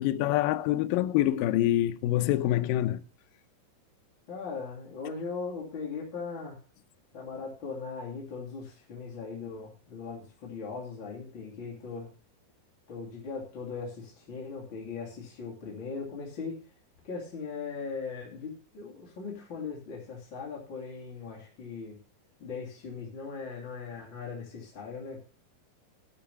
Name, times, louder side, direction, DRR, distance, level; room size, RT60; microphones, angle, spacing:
voice 1, 0.0-3.0, left 14 dB, 80° left, 2.3 m, -26 dB
voice 2, 4.3-6.6 7.1-12.1 12.9-16.6 17.0-22.0 22.4-25.2, left 5 dB, 35° left, 3.3 m, -39 dB
12.5 x 5.6 x 7.1 m
omnidirectional pair, 4.1 m